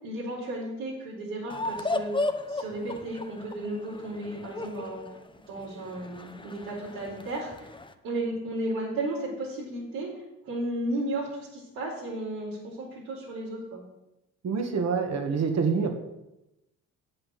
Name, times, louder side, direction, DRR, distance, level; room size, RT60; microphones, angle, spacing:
voice 1, 0.0-5.1 5.5-7.7 8.0-13.8, right 1 dB, 80° right, -9 dB, 4.6 m, -34 dB
sound 1, 1.5-7.9, left 2 dB, 15° left, 1.1 m, -35 dB
voice 2, 14.4-15.9, right 5 dB, 50° right, 5 dB, 2.2 m, -26 dB
8.1 x 7.8 x 7.7 m, 0.93 s
supercardioid pair, 65°, 34 cm